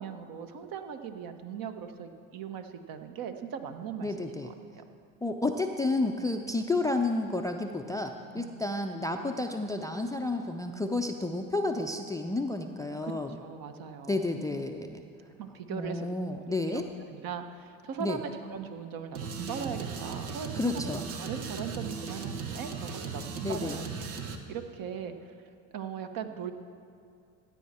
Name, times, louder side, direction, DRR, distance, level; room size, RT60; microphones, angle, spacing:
voice 1, 0.0-4.5 8.3-8.5 13.0-13.1 13.4-14.2 15.4-16.4 16.7-20.9 21.2-23.8 24.2-25.1 25.7-26.5, right 7 dB, 50° right, 8 dB, 1.0 m, -39 dB
voice 2, 4.0-4.5 5.2-13.4 14.1-15.0 15.7-16.9 18.0-18.2 20.5-21.1 23.4-23.8, left 2 dB, 10° left, 6 dB, 0.4 m, -31 dB
sound 1, 19.1-24.4, right 5 dB, 85° right, 1.0 m, -37 dB
15.0 x 8.6 x 4.3 m, 2.4 s
hypercardioid pair, 80°, 43 cm